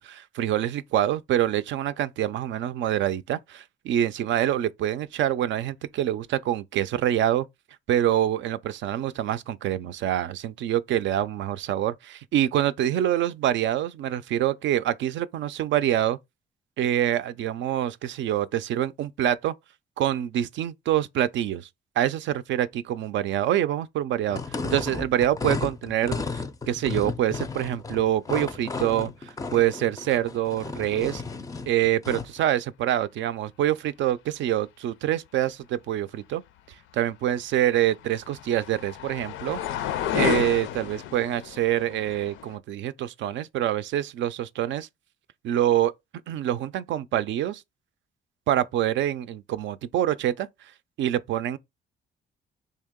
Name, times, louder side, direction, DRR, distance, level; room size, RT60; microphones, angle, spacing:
voice 1, 0.0-7.5 7.9-16.2 16.8-19.5 20.0-21.7 22.0-31.2 31.7-36.4 36.9-39.6 40.1-44.9 45.4-45.9 46.3-47.6 48.5-50.5 51.0-51.6, right 12 dB, 70° right, 0.4 m, -26 dB
sound 1, 24.3-32.4, left 4 dB, 15° left, 0.4 m, -33 dB
sound 2, 37.3-42.6, left 11 dB, 85° left, 0.4 m, -32 dB
3.4 x 2.8 x 3.6 m
cardioid pair, 90°, 20 cm